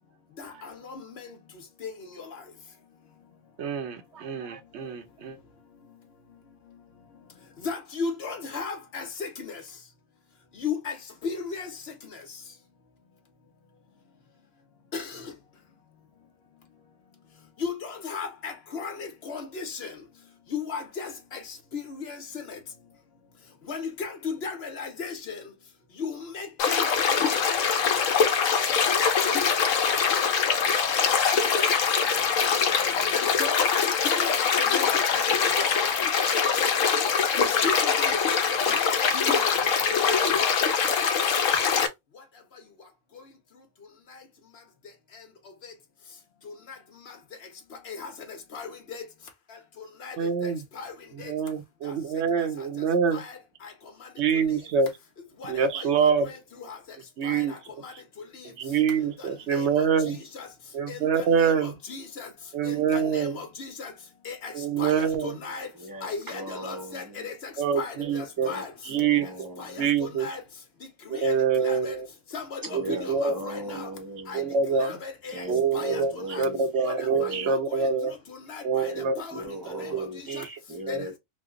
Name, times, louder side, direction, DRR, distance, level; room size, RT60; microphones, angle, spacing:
voice 1, 0.4-1.3 1.8-1.9 2.2-2.3 7.6-9.6 10.6-11.0 11.2-11.7 12.1-12.2 14.9-15.2 17.6-19.9 20.5-21.4 21.7-22.6 23.7-25.4 26.0-26.9 27.1-27.5 33.1-35.0 35.4-35.7 37.4-38.5 38.8-40.3 45.6-45.7 46.5-46.6 47.1-47.2 47.9-49.0 49.8-50.2 50.4-50.9 51.2-51.3 53.1-53.7 55.4-56.8 57.2-57.6 57.8-57.9 58.3-58.4 59.2-60.5 60.9-62.3 62.6-63.9 64.2-65.7 66.0-68.7 69.6-70.4 71.1-71.4 71.6-71.9 72.3-73.9 74.3-74.4 74.7-75.4 75.7-76.0 76.3-76.4 76.8-77.6 78.3-80.0 80.3-80.4 80.9-81.2, left 5 dB, 55° left, 1.0 m, -36 dB
voice 2, 3.6-5.4 50.2-50.6 51.3-53.2 54.2-54.9 55.5-56.3 57.2-57.5 58.6-60.2 60.7-61.7 62.5-63.4 64.5-65.3 67.6-68.5 68.9-69.3 69.8-70.3 71.1-72.1 72.7-73.3 74.3-74.9 75.5-78.1 78.6-80.4 80.9-81.0, right 6 dB, 60° right, 0.9 m, -25 dB
sound 1, 26.6-41.9, left 6 dB, 75° left, 1.0 m, -23 dB
voice 3, 65.8-67.3 68.4-69.9 72.6-74.6 75.3-77.6 78.8-81.1, right 1 dB, 20° right, 0.7 m, -39 dB
3.1 x 2.1 x 3.6 m
omnidirectional pair, 1.4 m